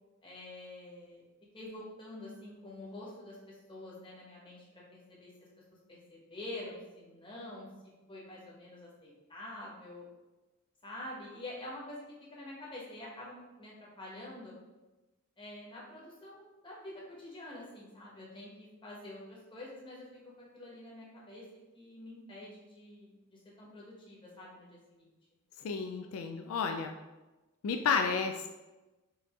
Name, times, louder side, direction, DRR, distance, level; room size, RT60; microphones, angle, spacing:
voice 1, 0.2-1.2 1.5-5.3 6.1-7.7 8.1-10.0 10.8-12.0 12.3-14.6 15.4-20.1 20.5-21.4 21.7-25.1, left 1 dB, 25° left, -4 dB, 1.0 m, -47 dB
voice 2, 25.6-26.9 27.6-28.5, left 5 dB, 80° left, 5 dB, 0.3 m, -31 dB
4.6 x 2.6 x 3.5 m, 1.1 s
head